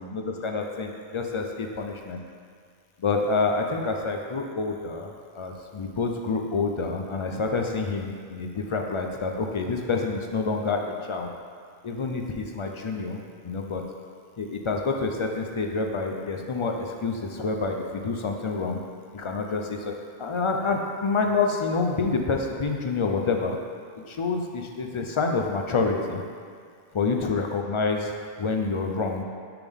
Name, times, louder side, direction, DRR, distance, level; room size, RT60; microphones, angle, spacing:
voice 1, 0.0-2.2 3.0-11.3 11.8-13.8 14.4-18.8 19.1-19.9 20.2-23.6 24.0-26.2 26.9-28.1 28.4-29.2, left 4 dB, 55° left, 2 dB, 0.3 m, -28 dB
10.5 x 3.6 x 3.5 m, 2.1 s
omnidirectional pair, 1.1 m